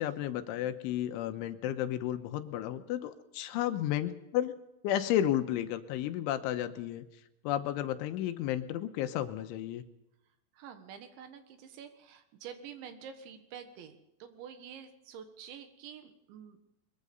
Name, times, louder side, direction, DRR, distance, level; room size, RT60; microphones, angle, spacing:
voice 1, 0.0-4.5 4.8-7.0 7.4-9.8, left 12 dB, 85° left, 9 dB, 3.4 m, -32 dB
voice 2, 10.5-16.6, right 8 dB, 75° right, 8 dB, 3.7 m, -48 dB
22.0 x 21.5 x 5.4 m, 0.88 s
omnidirectional pair, 5.6 m